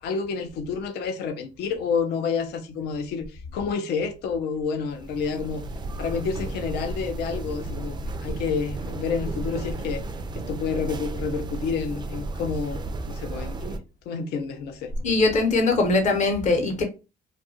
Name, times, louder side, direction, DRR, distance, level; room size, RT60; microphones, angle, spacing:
voice 1, 0.0-5.7 6.0-10.0 10.4-14.9, left 5 dB, 75° left, 0.5 m, -29 dB
sound 1, 4.9-13.8, right 2 dB, 25° right, 0.4 m, -33 dB
voice 2, 15.0-16.8, left 3 dB, 45° left, 0.8 m, -21 dB
2.6 x 2.3 x 2.8 m
cardioid pair, 110°, 17 cm